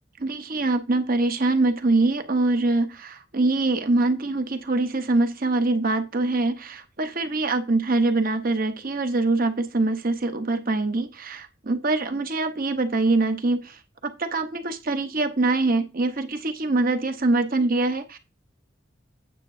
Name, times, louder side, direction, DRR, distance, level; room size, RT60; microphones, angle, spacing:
voice 1, 0.2-18.2, right 2 dB, 45° right, 8 dB, 1.0 m, -24 dB
9.8 x 8.9 x 2.7 m, 0.28 s
head